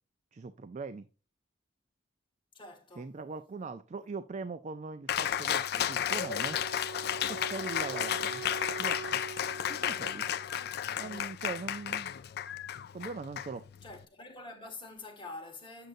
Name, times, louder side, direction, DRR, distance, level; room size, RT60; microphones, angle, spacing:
voice 1, 0.3-1.1 3.0-6.6 7.3-8.4 8.8-9.2 9.7-10.3 11.0-12.1 12.9-13.6, right 4 dB, 40° right, 0.4 m, -41 dB
voice 2, 2.5-3.1 13.8-15.9, left 2 dB, 25° left, 1.4 m, -46 dB
Cheering, 5.1-14.0, left 10 dB, 60° left, 0.4 m, -33 dB
Wind instrument woodwind instrument, 5.9-10.9, right 4 dB, 85° right, 1.3 m, -44 dB
7.7 x 6.5 x 2.6 m
head